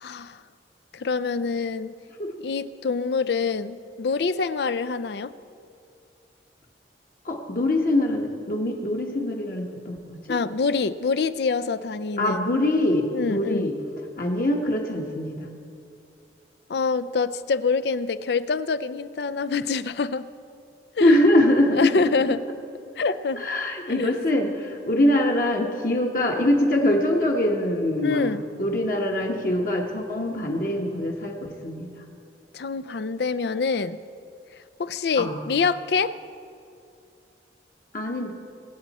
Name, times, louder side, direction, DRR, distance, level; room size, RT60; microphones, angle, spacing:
voice 1, 0.0-0.4 0.9-1.9 2.4-5.3 10.3-12.5 13.1-13.7 16.7-20.3 21.0-21.1 21.7-22.4 23.0-23.4 24.0-24.1 25.0-25.2 28.0-28.4 32.5-34.0 34.8-36.1, left 4 dB, 65° left, 15 dB, 0.5 m, -26 dB
voice 2, 7.2-10.2 12.2-13.7 14.2-15.5 21.0-21.9 23.3-31.9 35.1-35.4 37.9-38.3, left 1 dB, 50° left, 0 dB, 1.3 m, -23 dB
24.0 x 8.3 x 4.2 m, 2.5 s
head